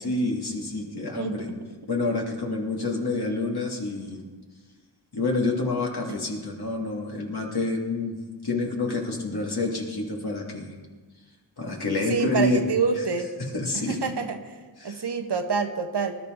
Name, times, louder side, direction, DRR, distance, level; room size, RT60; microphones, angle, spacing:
voice 1, 0.0-1.5 1.9-4.2 5.1-8.2 8.4-10.7 11.6-12.7 13.0-13.1 13.5-14.0 14.8-15.0, left 2 dB, 60° left, -1 dB, 2.9 m, -28 dB
voice 2, 1.2-1.5 12.1-13.3 13.9-14.4 14.8-16.2, right 5 dB, 65° right, 6 dB, 1.3 m, -27 dB
20.0 x 12.0 x 4.0 m, 1.4 s
wide cardioid pair, 65°, 44 cm